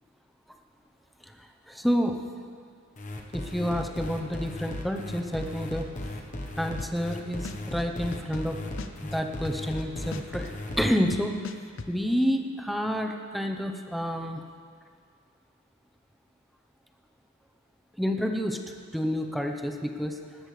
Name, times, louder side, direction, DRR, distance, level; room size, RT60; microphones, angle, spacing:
voice 1, 1.4-2.1 3.3-5.9 6.6-8.6 9.0-11.5 11.9-14.4 18.0-18.6 18.9-20.2, equal, ahead, 4 dB, 0.8 m, -29 dB
sound 1, 3.0-10.8, left 1 dB, 35° left, 1.1 m, -36 dB
sound 2, 6.8-7.1 7.4-9.8 10.1-11.9, left 3 dB, 65° left, 0.6 m, -39 dB
18.5 x 13.5 x 3.3 m, 2.1 s
head